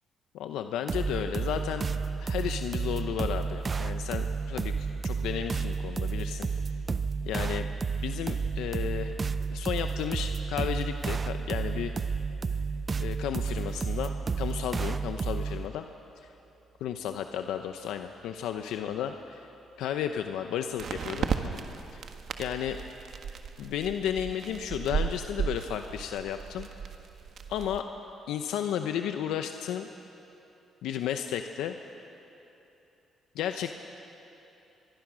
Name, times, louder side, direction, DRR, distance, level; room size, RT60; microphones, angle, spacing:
voice 1, 0.3-1.9 2.2-6.5 7.2-7.7 8.0-9.2 9.5-12.2 13.0-14.1 14.4-15.8 16.8-19.5 19.8-21.3 21.9-22.1 22.4-22.8 23.6-26.7 27.5-27.9 28.3-29.9 30.8-31.8 33.3-33.7, left 9 dB, 90° left, 7 dB, 0.8 m, -33 dB
sound 1, 0.9-15.7, right 5 dB, 35° right, 0.6 m, -31 dB
sound 2, 14.0-14.1 20.8-27.8, right 7 dB, 60° right, 1.5 m, -35 dB
23.5 x 23.5 x 6.3 m, 3.0 s
cardioid pair, 90°, 0 cm